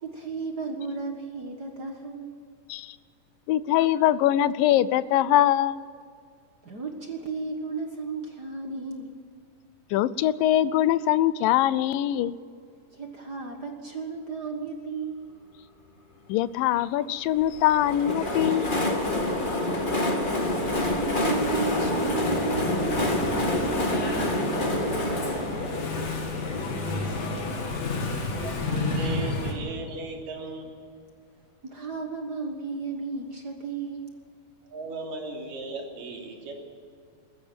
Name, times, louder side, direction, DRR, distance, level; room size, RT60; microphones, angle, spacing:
voice 1, 0.0-2.3 6.6-9.1 12.9-15.4 20.2-23.3 31.6-34.1, right 4 dB, 45° right, 3 dB, 1.3 m, -34 dB
voice 2, 3.5-5.9 9.9-12.4 16.3-18.7, left 12 dB, 80° left, 17 dB, 2.3 m, -23 dB
Engine / Mechanisms, 17.4-29.5, left 3 dB, 50° left, 3.5 m, -32 dB
Train, 17.6-27.3, left 1 dB, 20° left, 1.6 m, -28 dB
voice 3, 28.4-30.7 34.7-36.5, right 3 dB, 70° right, 0 dB, 4.6 m, -36 dB
20.5 x 14.5 x 9.0 m, 2.2 s
omnidirectional pair, 4.0 m